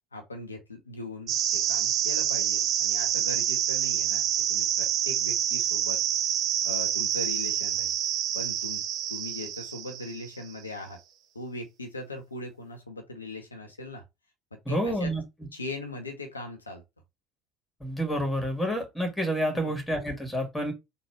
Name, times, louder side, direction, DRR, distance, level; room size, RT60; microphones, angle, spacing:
voice 1, 0.1-6.0 6.6-7.9 8.3-8.8 9.1-11.0 11.3-14.0 14.5-15.1 15.5-16.8 19.5-19.8, left 2 dB, 80° left, 0.9 m, -39 dB
sound 1, 1.3-10.4, right 10 dB, 45° right, 0.7 m, -27 dB
voice 2, 14.7-15.2 17.8-20.7, equal, 5° left, 2.1 m, -29 dB
4.0 x 2.9 x 4.5 m
figure-of-eight pair, 65°, 0 cm